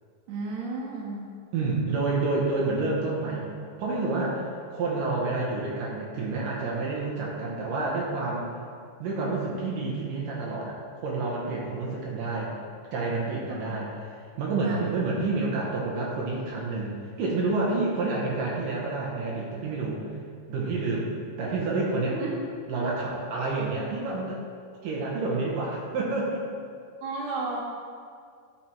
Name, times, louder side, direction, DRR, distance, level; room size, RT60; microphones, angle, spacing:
voice 1, 0.3-1.2 13.5-13.8 14.6-14.8 22.1-22.4 27.0-27.6, right 3 dB, 60° right, -3 dB, 2.6 m, -33 dB
voice 2, 1.5-3.5 3.8-8.5 9.0-10.8 11.0-12.5 12.9-13.9 14.4-16.9 17.2-20.0 20.5-21.1 21.4-22.2 22.7-24.4 24.8-26.5, right 3 dB, 80° right, -4 dB, 2.7 m, -28 dB
11.0 x 6.1 x 4.5 m, 2.2 s
omnidirectional pair, 3.9 m